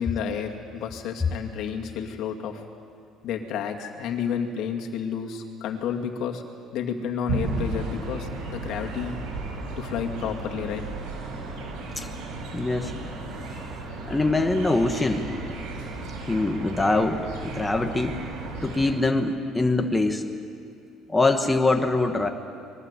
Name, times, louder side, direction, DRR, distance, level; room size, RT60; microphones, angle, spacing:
voice 1, 0.0-2.6 3.2-6.4 6.7-9.2 9.8-10.8, left 7 dB, 60° left, 3 dB, 2.3 m, -31 dB
sound 1, 7.3-18.9, right 2 dB, 90° right, 7.8 m, -34 dB
voice 2, 12.5-12.9 14.1-15.2 16.3-18.2 18.6-20.2 21.1-22.3, left 2 dB, 10° left, 4 dB, 1.1 m, -23 dB
25.0 x 21.5 x 8.3 m, 2.4 s
cardioid pair, 170°, 0 cm